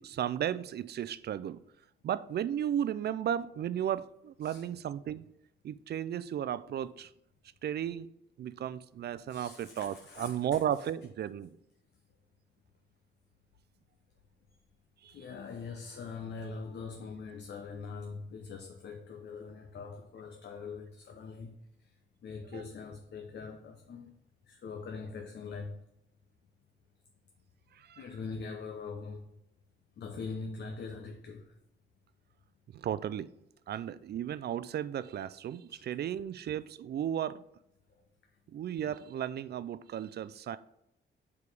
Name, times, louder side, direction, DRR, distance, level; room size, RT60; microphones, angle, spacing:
voice 1, 0.0-1.6 2.0-5.3 5.6-7.1 7.6-8.1 8.4-11.6 15.0-15.2 22.5-22.6 27.7-28.0 32.7-33.3 33.7-37.4 38.5-40.6, right 10 dB, 55° right, 0.4 m, -34 dB
voice 2, 9.3-10.6 15.1-21.6 21.8-21.9 22.2-24.1 24.5-25.8 28.0-29.3 30.0-31.5 35.7-35.8, left 4 dB, 60° left, 0.8 m, -42 dB
4.8 x 4.8 x 5.4 m
cardioid pair, 105°, 20 cm